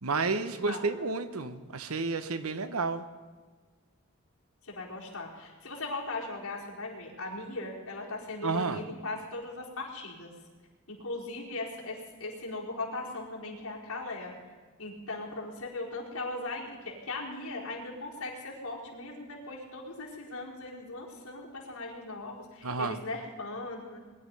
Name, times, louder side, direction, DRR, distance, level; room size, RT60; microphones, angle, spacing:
voice 1, 0.0-3.1 8.4-8.8 22.6-23.0, right 4 dB, 85° right, 11 dB, 1.0 m, -31 dB
voice 2, 4.6-10.3 10.9-14.4 14.8-24.0, left 2 dB, 80° left, -5 dB, 4.6 m, -38 dB
22.0 x 11.5 x 5.5 m, 1.4 s
head